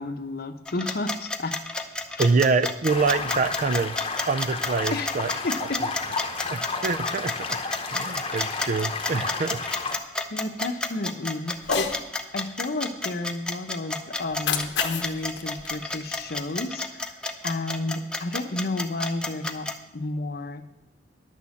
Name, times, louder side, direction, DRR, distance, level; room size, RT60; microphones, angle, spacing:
voice 1, 0.0-1.6 2.2-2.3 4.9-5.1 5.4-5.8 10.3-11.9 12.3-17.2 17.4-20.6, left 2 dB, 60° left, 8 dB, 0.8 m, -31 dB
sound 1, 0.7-19.7, left 2 dB, 5° left, 0.7 m, -30 dB
voice 2, 2.2-4.0 4.3-5.3 5.8-5.9 6.5-7.6 7.9-9.6, right 4 dB, 45° right, 14 dB, 0.4 m, -25 dB
sound 2, 2.9-10.0, left 4 dB, 30° left, 0.9 m, -32 dB
Cat, 11.6-12.0 14.2-16.6, left 6 dB, 85° left, 1.0 m, -30 dB
11.0 x 6.5 x 7.1 m, 0.94 s
head